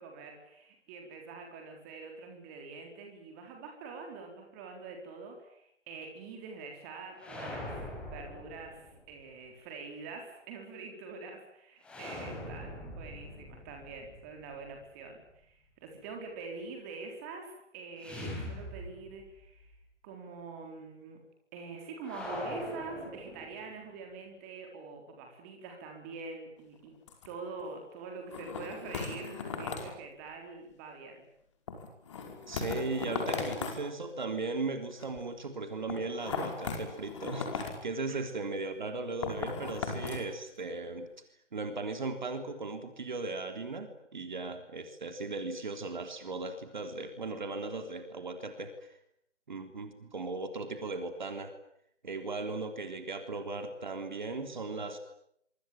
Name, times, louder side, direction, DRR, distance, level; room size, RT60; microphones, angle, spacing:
voice 1, 0.0-7.8 8.1-19.8 20.0-21.2 21.5-27.0 27.2-31.3 38.1-38.4, right 4 dB, 15° right, 3 dB, 4.0 m, -45 dB
sound 1, 7.2-9.1 11.8-14.8 18.0-19.4 19.7-19.8 22.0-23.8, left 1 dB, 5° left, 4.2 m, -42 dB
sound 2, 26.6-26.8 27.1-27.3 27.6-27.7 28.3-29.9 31.7-33.8 34.9-35.2 35.9-37.8 39.2-40.3 40.6-40.7, left 5 dB, 25° left, 5.2 m, -37 dB
voice 2, 32.5-41.1 41.5-48.9 49.5-51.5 52.0-55.0, right 3 dB, 40° right, 7 dB, 3.6 m, -37 dB
26.5 x 24.5 x 8.9 m, 0.73 s
figure-of-eight pair, 155°, 36 cm